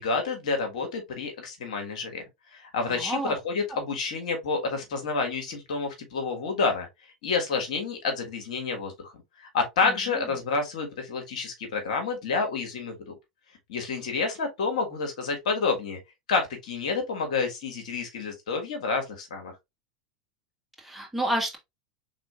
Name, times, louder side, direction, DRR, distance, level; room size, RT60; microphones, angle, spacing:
voice 1, 0.0-2.2 2.5-6.9 7.2-9.1 9.4-12.9 13.7-16.0 16.3-19.5, left 4 dB, 75° left, 1.5 m, -29 dB
voice 2, 2.9-3.4 9.8-10.2 20.8-21.6, right 1 dB, 5° right, 1.6 m, -30 dB
4.9 x 3.7 x 2.4 m
hypercardioid pair, 90°, 4 cm